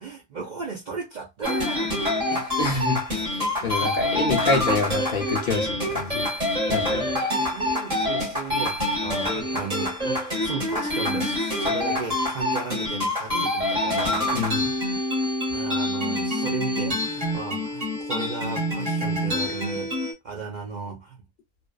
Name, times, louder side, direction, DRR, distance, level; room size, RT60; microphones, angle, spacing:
voice 1, 0.0-2.6 3.6-4.5 6.1-6.2 6.6-14.7 15.5-21.2, right 4 dB, 55° right, 0.5 m, -36 dB
sound 1, 1.4-20.1, left 1 dB, 30° right, 1.3 m, -26 dB
voice 2, 2.6-6.3 6.7-7.1 14.3-14.7, left 3 dB, 55° left, 0.7 m, -27 dB
2.5 x 2.2 x 2.2 m
omnidirectional pair, 1.2 m